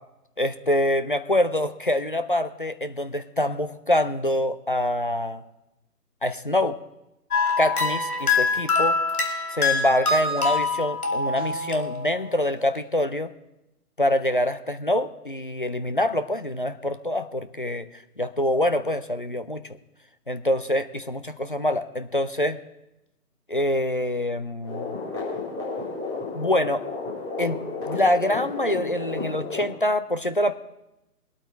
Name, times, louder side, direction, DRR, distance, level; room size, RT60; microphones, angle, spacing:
voice 1, 0.4-5.4 6.2-6.8 7.6-9.0 9.5-13.3 14.0-17.9 18.2-19.6 20.3-22.6 23.5-25.0 26.3-26.8 27.4-30.5, left 1 dB, 35° left, 11 dB, 0.5 m, -25 dB
sound 1, 7.3-12.5, left 4 dB, 65° left, 2.8 m, -25 dB
sound 2, 11.4-11.9, equal, 15° right, 0.7 m, -42 dB
sound 3, 24.6-29.7, left 3 dB, 10° left, 3.6 m, -32 dB
21.5 x 8.7 x 4.5 m, 0.90 s
figure-of-eight pair, 150°, 48 cm